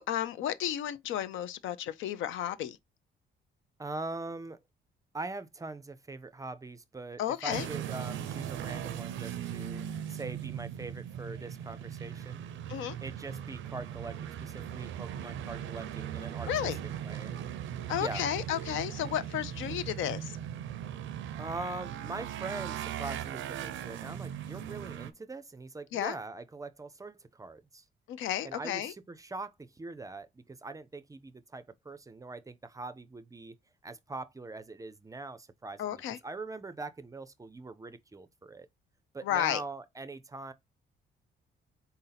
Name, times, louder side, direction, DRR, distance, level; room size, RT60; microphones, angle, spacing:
voice 1, 0.0-2.8 7.2-7.7 12.7-13.0 16.5-16.8 17.9-20.4 25.9-26.2 28.1-28.9 35.8-36.2 39.2-39.6, left 11 dB, 80° left, 0.5 m, -32 dB
voice 2, 3.8-4.6 5.1-16.5 17.0-17.4 18.0-18.3 21.4-27.8 28.4-33.5 33.8-38.7 39.1-40.5, right 3 dB, 15° right, 0.4 m, -42 dB
sound 1, 7.5-25.1, right 10 dB, 75° right, 0.5 m, -39 dB
4.0 x 2.7 x 3.9 m
cardioid pair, 90°, 20 cm